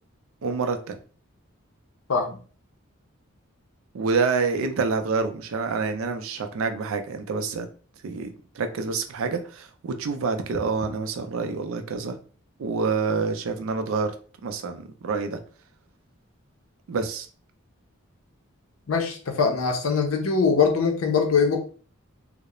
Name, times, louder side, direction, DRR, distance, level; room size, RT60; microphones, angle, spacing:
voice 1, 0.4-1.0 3.9-7.7 8.0-12.2 12.6-14.1 14.4-15.4 16.9-17.3, right 4 dB, 75° right, 7 dB, 0.4 m, -27 dB
voice 2, 18.9-21.6, left 5 dB, 75° left, 4 dB, 0.6 m, -22 dB
2.3 x 2.0 x 2.9 m, 0.40 s
head